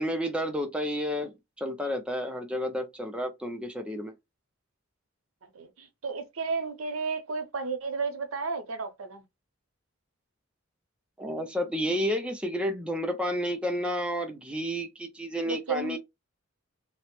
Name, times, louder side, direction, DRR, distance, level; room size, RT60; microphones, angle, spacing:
voice 1, 0.0-1.3 1.6-4.1 11.2-16.0, equal, 5° right, 0.4 m, -31 dB
voice 2, 5.5-9.2 15.4-16.0, right 4 dB, 85° right, 0.7 m, -33 dB
2.9 x 2.0 x 3.0 m
head